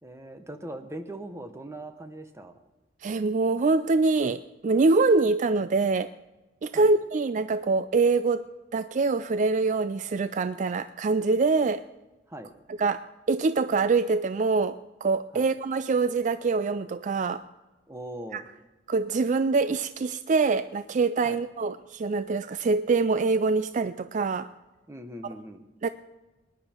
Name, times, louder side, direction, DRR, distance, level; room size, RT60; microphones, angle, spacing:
voice 1, 0.0-2.6 6.7-6.9 12.3-12.5 15.3-15.5 17.9-18.5 21.2-21.4 24.9-25.6, right 1 dB, 15° right, 7 dB, 1.0 m, -40 dB
voice 2, 3.0-6.1 6.6-8.4 8.7-11.8 12.7-17.4 18.3-18.4 18.9-24.5 25.8-25.9, right 3 dB, 40° right, 13 dB, 0.3 m, -24 dB
19.5 x 10.5 x 4.4 m, 1.1 s
head